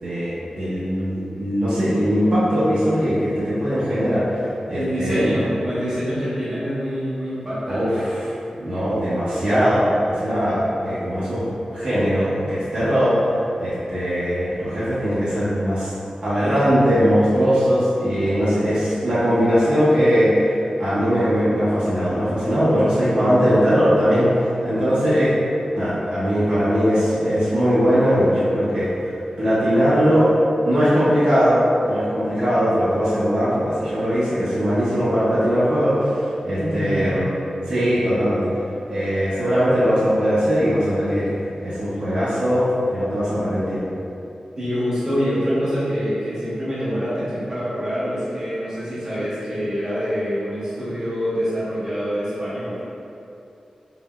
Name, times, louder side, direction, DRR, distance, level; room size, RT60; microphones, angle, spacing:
voice 1, 0.0-5.3 7.7-8.2 8.5-11.4 11.7-13.2 13.6-15.9 16.2-25.3 25.7-29.1 29.4-30.3 30.6-37.3 37.7-38.5 38.9-43.8, equal, 60° right, -12 dB, 0.8 m, -20 dB
voice 2, 4.7-8.0 36.6-37.2 44.6-52.8, equal, 30° right, -11 dB, 1.0 m, -25 dB
3.8 x 2.1 x 2.3 m, 2.7 s
wide cardioid pair, 90°, 2 cm